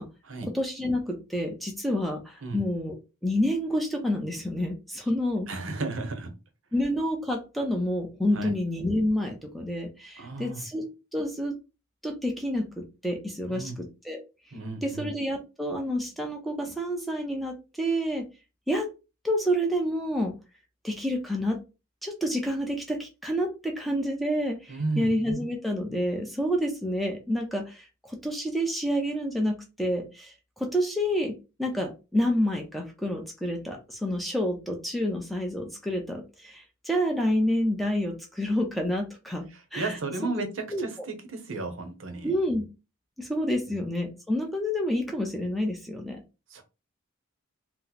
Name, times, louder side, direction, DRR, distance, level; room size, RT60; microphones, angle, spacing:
voice 1, 0.5-3.0 3.2-5.5 6.7-11.6 12.0-14.2 14.8-18.3 18.7-18.9 19.2-20.3 20.8-21.6 22.0-39.5 39.7-40.0 40.7-40.8 42.2-42.7 43.2-46.2, equal, ahead, 1 dB, 0.5 m, -28 dB
voice 2, 5.5-6.3 8.3-8.5 10.2-10.6 13.5-13.8 14.5-15.1 24.7-25.1 39.5-42.3 46.5-46.6, right 3 dB, 60° right, 6 dB, 0.7 m, -33 dB
2.8 x 2.0 x 3.9 m, 0.29 s
head